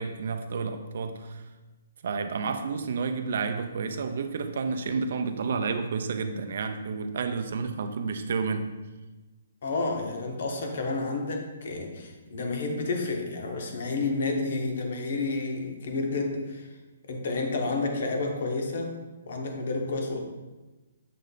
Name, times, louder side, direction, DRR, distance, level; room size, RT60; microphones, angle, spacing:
voice 1, 0.0-1.4 2.0-8.7, right 5 dB, 50° right, 8 dB, 0.5 m, -30 dB
voice 2, 9.6-16.7 17.1-19.0 19.3-20.2, left 3 dB, 50° left, 2 dB, 0.9 m, -30 dB
7.5 x 3.2 x 3.9 m, 1.2 s
hypercardioid pair, 175°, 0 cm